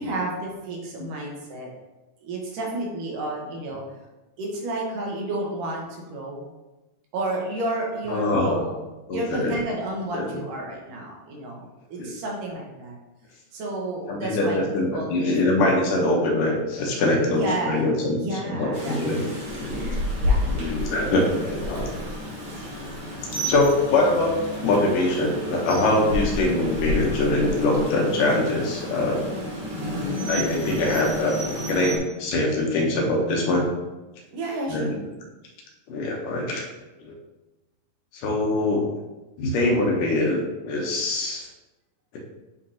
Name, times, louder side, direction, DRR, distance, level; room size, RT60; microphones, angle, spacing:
voice 1, 0.0-1.7 2.2-3.8 4.4-6.5 7.1-8.9 9.1-13.0 13.5-14.6 14.9-15.3 17.3-19.0 19.7-20.4 20.8-21.1 23.3-23.5 34.3-34.9, right 2 dB, 75° right, -1 dB, 2.7 m, -31 dB
voice 2, 8.1-8.6 9.1-9.6 10.1-10.4 12.0-12.1 14.1-19.9 20.5-21.9 22.8-22.9 23.3-24.3 24.6-29.2 30.3-33.7 34.7-35.0 35.9-36.7 37.0-37.1 38.1-38.9 39.4-41.5 42.1-42.2, left 2 dB, 75° left, 0 dB, 2.5 m, -23 dB
Rain, 18.7-32.0, left 1 dB, 50° right, 1.2 m, -30 dB
8.3 x 5.0 x 2.8 m, 1.1 s
omnidirectional pair, 3.9 m